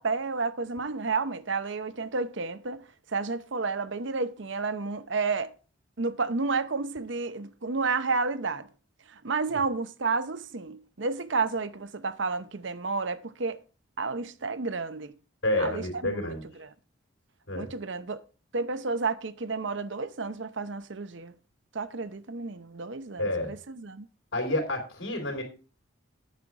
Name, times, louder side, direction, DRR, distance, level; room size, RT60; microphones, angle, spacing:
voice 1, 0.0-5.5 6.0-8.7 9.1-13.6 14.0-15.1 15.6-16.7 17.5-18.2 18.5-21.3 21.7-24.1, right 4 dB, 70° right, 0.8 m, -31 dB
voice 2, 15.4-16.4 17.5-17.7 23.2-23.5 24.3-25.4, left 1 dB, 85° left, 3.3 m, -29 dB
9.3 x 7.7 x 4.7 m
head